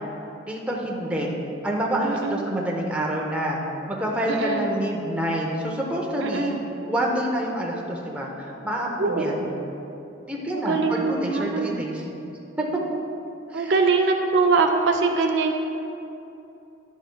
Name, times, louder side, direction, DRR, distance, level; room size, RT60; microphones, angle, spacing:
voice 1, 0.5-1.3 1.6-3.6 3.9-6.5 6.9-9.5 10.3-12.0 12.6-12.7 13.5-13.7, equal, 5° right, -3 dB, 0.7 m, -27 dB
voice 2, 2.0-2.5 4.3-4.7 6.2-6.6 9.0-9.5 10.5-11.7 13.5-15.5, right 4 dB, 60° right, 3 dB, 0.4 m, -23 dB
10.5 x 6.4 x 2.3 m, 2.9 s
head